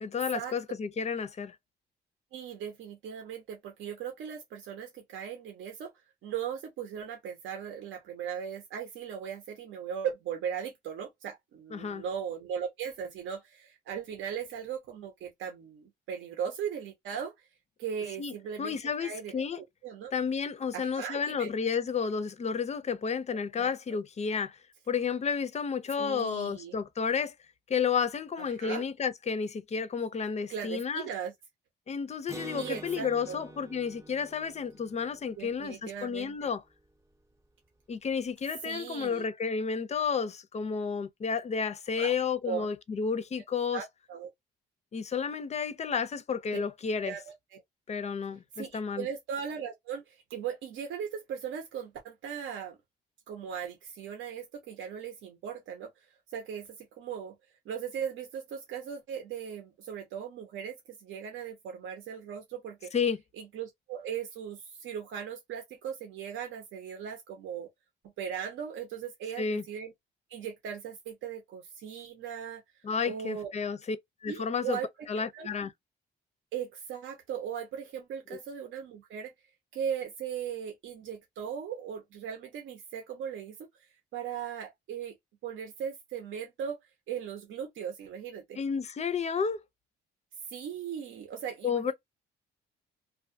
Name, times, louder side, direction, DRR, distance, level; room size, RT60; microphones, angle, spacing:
voice 1, 0.0-1.6 11.7-12.0 18.2-19.6 20.1-24.6 24.9-27.3 27.7-31.1 31.9-36.6 37.9-43.8 44.9-47.1 47.9-49.1 62.9-63.2 69.4-69.6 72.8-74.0 74.2-74.8 75.1-75.7 78.3-78.4 88.6-89.6 91.6-91.9, left 6 dB, 35° left, 0.4 m, -31 dB
voice 2, 2.3-5.9 6.2-17.3 17.8-20.1 20.7-21.5 23.6-23.7 26.0-26.8 28.6-28.8 30.5-31.3 32.5-33.4 35.4-36.5 38.6-39.2 42.0-42.1 42.4-42.7 43.7-44.3 47.0-47.2 47.5-47.6 48.6-52.8 53.3-55.9 56.3-57.3 57.6-62.9 63.4-67.7 68.2-69.9 70.3-72.6 73.0-73.5 74.3-74.9 75.3-75.5 76.5-79.3 79.7-83.7 84.1-85.2 85.4-86.8 87.1-88.6 90.5-91.9, right 8 dB, 80° right, 0.9 m, -38 dB
Acoustic guitar, 32.3-35.9, right 2 dB, 15° right, 0.7 m, -47 dB
2.4 x 2.2 x 2.6 m
cardioid pair, 90°, 20 cm